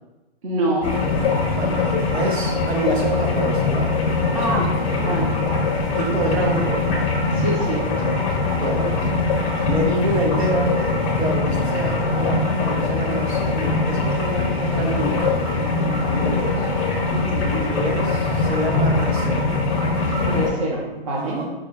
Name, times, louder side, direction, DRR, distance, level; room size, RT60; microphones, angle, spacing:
voice 1, 0.4-1.0 4.3-5.3 7.3-7.9 17.1-17.6 20.1-21.5, right 1 dB, 30° right, -1 dB, 0.6 m, -26 dB
sound 1, 0.8-20.5, left 3 dB, 35° left, 0.7 m, -22 dB
voice 2, 1.5-5.2 6.0-6.9 8.5-9.0 9.6-10.8 11.2-15.2 16.1-16.7 17.5-19.5 21.1-21.5, right 1 dB, 90° right, 0 dB, 1.0 m, -27 dB
4.8 x 2.2 x 3.4 m, 1.1 s
hypercardioid pair, 155°, 31 cm